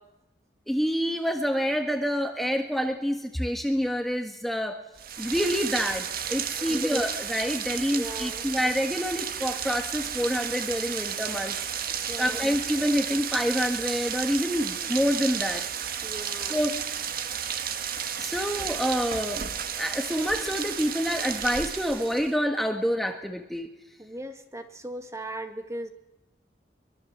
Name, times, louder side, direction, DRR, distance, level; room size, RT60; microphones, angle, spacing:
voice 1, 0.7-4.8 5.2-11.5 12.2-15.6 16.5-16.7 18.2-19.4 19.8-23.7, equal, ahead, 4 dB, 1.6 m, -27 dB
Rain, 5.0-22.4, right 8 dB, 55° right, 1.7 m, -33 dB
voice 2, 6.5-6.9 7.9-8.5 12.1-12.5 16.0-16.6 24.0-25.9, right 1 dB, 15° right, 7 dB, 1.9 m, -38 dB
23.5 x 22.5 x 7.4 m, 0.94 s
head